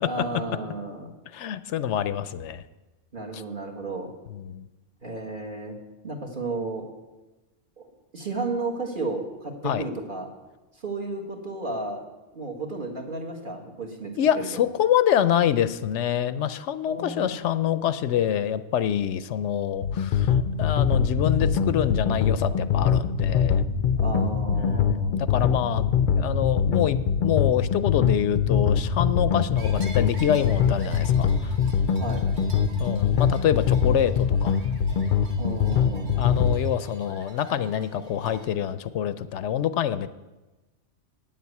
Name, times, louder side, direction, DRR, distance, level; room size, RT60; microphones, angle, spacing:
voice 1, 0.1-1.1 3.1-4.1 5.0-5.8 6.0-6.9 7.8-10.3 10.8-12.0 12.3-14.6 16.9-17.3 24.0-25.2 32.0-32.2 35.4-36.3, right 3 dB, 45° right, 0 dB, 1.8 m, -33 dB
voice 2, 1.3-2.6 3.3-3.4 4.3-4.7 9.6-9.9 14.2-23.6 24.5-25.9 26.2-31.6 32.8-34.6 36.2-40.1, left 10 dB, 75° left, 13 dB, 0.9 m, -26 dB
sound 1, 19.8-36.6, left 7 dB, 55° left, 0.6 m, -23 dB
sound 2, 29.6-38.5, right 3 dB, 65° right, 1.5 m, -47 dB
9.2 x 7.6 x 8.4 m, 1.1 s
omnidirectional pair, 1.2 m